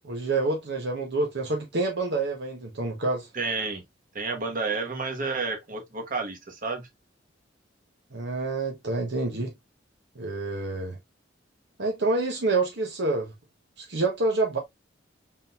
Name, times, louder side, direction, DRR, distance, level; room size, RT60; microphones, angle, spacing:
voice 1, 0.0-3.3 8.1-9.5 10.1-11.0 11.8-13.3 13.8-14.6, right 3 dB, 65° right, 0.9 m, -27 dB
voice 2, 3.3-3.8 4.1-6.9, right 4 dB, 45° right, 1.2 m, -30 dB
4.2 x 3.7 x 2.3 m
head